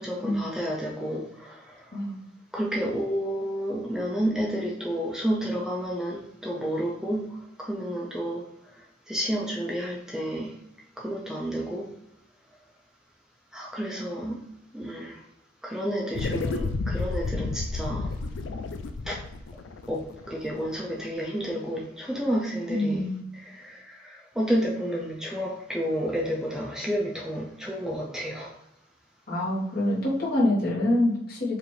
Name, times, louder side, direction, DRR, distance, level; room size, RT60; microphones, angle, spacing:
voice 1, 0.0-2.0 2.5-8.5 8.8-10.5 11.0-11.9 13.5-14.4 14.7-15.2 15.6-18.1 19.1-19.2 19.9-28.5, equal, 5° right, 0.4 m, -31 dB
sound 1, 16.1-20.8, left 3 dB, 70° left, 0.3 m, -31 dB
voice 2, 22.7-23.2 29.3-31.6, left 1 dB, 50° left, 1.3 m, -25 dB
4.7 x 2.5 x 3.1 m
head